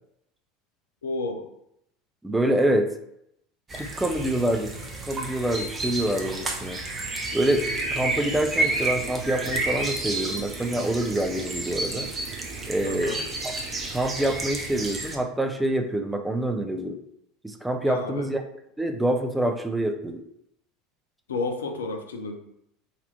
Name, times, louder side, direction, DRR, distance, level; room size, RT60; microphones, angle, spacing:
voice 1, 1.0-1.5 12.8-13.2 17.8-18.3 21.3-22.4, left 3 dB, 75° left, 4 dB, 0.6 m, -31 dB
voice 2, 2.2-2.9 3.7-4.7 5.0-6.8 7.3-12.1 12.7-13.2 13.4-13.5 13.9-17.0 17.4-18.4 18.8-20.2, right 1 dB, 5° right, 5 dB, 0.6 m, -26 dB
sound 1, 3.7-15.2, right 2 dB, 20° right, 0.9 m, -31 dB
sound 2, 7.3-14.2, right 9 dB, 55° right, 0.4 m, -43 dB
4.2 x 2.8 x 4.4 m, 0.77 s
figure-of-eight pair, 75°, 0 cm